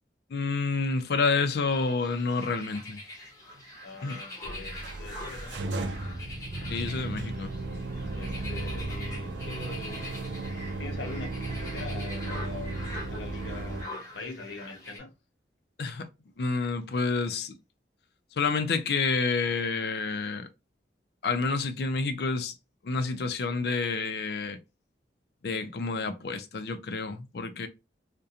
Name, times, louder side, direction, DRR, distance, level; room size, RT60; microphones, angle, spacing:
voice 1, 0.3-3.0 4.0-4.2 6.7-7.5 15.8-16.1 16.4-17.5 18.4-20.5 21.2-22.5 22.8-24.6 25.4-27.7, left 4 dB, 60° left, 0.4 m, -29 dB
sound 1, 1.7-15.0, left 1 dB, 20° left, 0.8 m, -44 dB
voice 2, 3.8-6.1 8.1-10.2 10.8-15.1, left 4 dB, 80° left, 0.8 m, -43 dB
sound 2, 4.4-13.8, right 2 dB, 85° right, 0.4 m, -35 dB
2.4 x 2.1 x 2.7 m
head